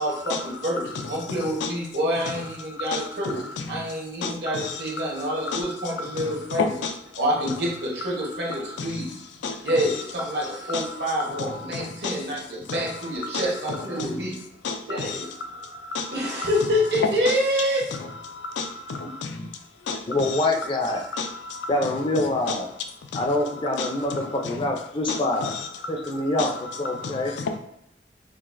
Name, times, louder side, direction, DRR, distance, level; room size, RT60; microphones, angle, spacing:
voice 1, 0.0-6.7 7.2-9.2 9.6-14.4 14.9-15.3 16.1-17.9 19.0-19.1, equal, 70° right, -2 dB, 1.0 m, -27 dB
voice 2, 1.4-1.7 2.8-3.6 4.2-5.0 5.4-6.9 8.8-9.1 9.4-9.9 10.7-12.2 13.2-14.2 14.6-16.5 17.3-17.4 18.3-19.5 19.9-20.4 21.1-21.7 22.5-22.6 23.1-23.3 23.8-24.3 25.1-25.9 26.8-27.6, left 4 dB, 90° left, 6 dB, 0.4 m, -32 dB
voice 3, 20.1-21.0 21.7-22.7 23.1-25.5 25.9-26.5 26.8-27.3, left 2 dB, 30° left, 2 dB, 0.4 m, -25 dB
3.9 x 2.4 x 2.5 m, 0.77 s
head